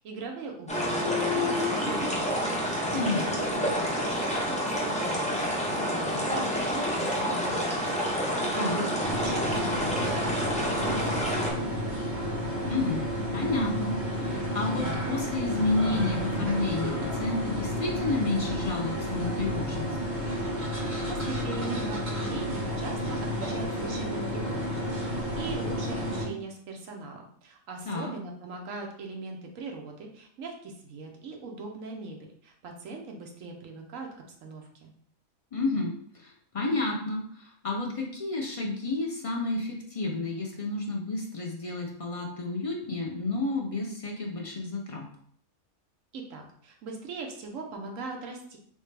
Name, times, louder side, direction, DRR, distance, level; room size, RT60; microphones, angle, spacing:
voice 1, 0.0-11.8 21.1-34.1 34.4-34.9 46.1-48.6, right 3 dB, 75° right, 2 dB, 1.1 m, -40 dB
sound 1, 0.7-11.5, equal, 10° left, 0.5 m, -28 dB
voice 2, 2.9-3.2 8.6-8.9 12.7-13.1 13.3-20.0 27.8-28.1 35.5-45.0, left 3 dB, 60° left, -1 dB, 0.3 m, -31 dB
sound 2, 9.0-26.3, equal, 50° right, 1.5 m, -31 dB
3.6 x 3.2 x 3.3 m, 0.62 s
omnidirectional pair, 1.4 m